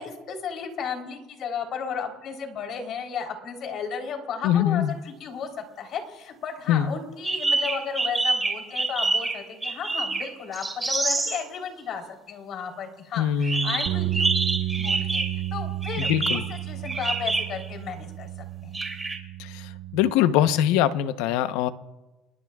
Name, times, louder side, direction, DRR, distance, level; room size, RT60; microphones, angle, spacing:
voice 1, 0.0-5.5 5.8-14.3 14.8-15.2 15.5-16.1 16.5-18.3 18.6-18.8, left 6 dB, 50° left, 3 dB, 3.7 m, -34 dB
voice 2, 4.4-4.9 6.7-6.9 13.2-13.9 16.0-16.4 19.4-21.7, left 10 dB, 85° left, 11 dB, 0.9 m, -23 dB
sound 1, 7.2-11.4 13.4-15.5 15.8-17.7 18.7-19.2, right 3 dB, 15° right, 2.9 m, -27 dB
sound 2, 13.9-20.1, right 14 dB, 60° right, 1.1 m, -32 dB
29.0 x 20.5 x 2.4 m, 1.1 s
cardioid pair, 125°, 0 cm